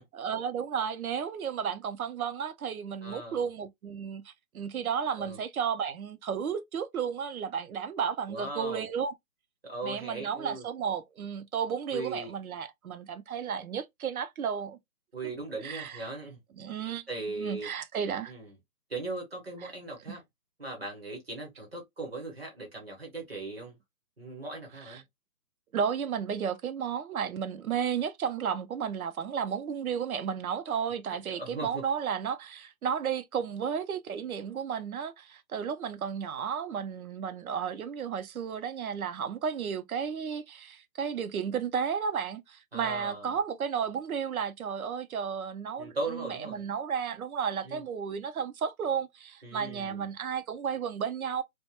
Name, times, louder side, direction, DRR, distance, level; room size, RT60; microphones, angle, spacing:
voice 1, 0.0-9.1 9.8-14.8 15.6-16.0 16.6-17.1 17.4-18.3 20.1-20.2 24.9-25.0 25.7-51.4, right 7 dB, 65° right, 0.6 m, -33 dB
voice 2, 3.0-3.5 5.2-5.4 8.3-8.8 9.6-10.6 11.9-12.3 15.1-16.4 17.1-17.7 18.3-18.5 18.9-20.2 20.6-23.8 24.2-25.0 31.1-31.8 42.7-43.3 45.8-46.7 47.6-47.8 49.4-50.1, right 2 dB, 40° right, 0.8 m, -38 dB
2.2 x 2.1 x 2.9 m
hypercardioid pair, 175°, 47 cm